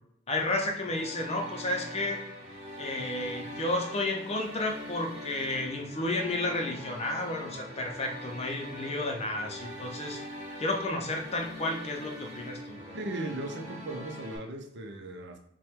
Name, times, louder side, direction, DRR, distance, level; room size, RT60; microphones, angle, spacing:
voice 1, 0.3-2.2 2.8-10.2 10.6-13.0, left 2 dB, 30° left, 2 dB, 0.6 m, -32 dB
sound 1, 0.7-14.4, equal, 30° right, 1.6 m, -43 dB
voice 2, 12.9-15.4, right 2 dB, 55° right, 4 dB, 0.7 m, -37 dB
5.6 x 2.2 x 3.5 m, 0.78 s
head